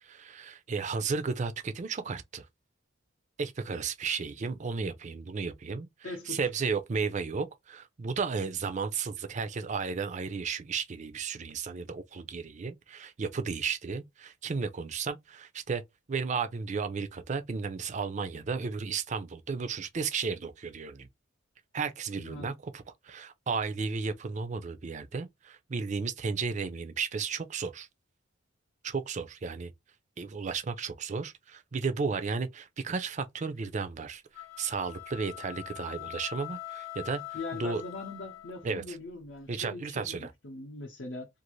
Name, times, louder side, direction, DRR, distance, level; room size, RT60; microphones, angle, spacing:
voice 1, 0.0-2.5 3.4-15.8 16.1-21.1 21.7-27.9 28.8-29.7 30.2-37.2 37.5-37.8 38.6-39.0 39.5-40.3, right 5 dB, 35° right, 0.4 m, -34 dB
voice 2, 6.0-6.4 22.2-22.5 37.3-41.3, left 3 dB, 60° left, 0.6 m, -41 dB
sound 1, 34.3-38.8, left 18 dB, 85° left, 0.9 m, -43 dB
2.5 x 2.5 x 3.0 m
head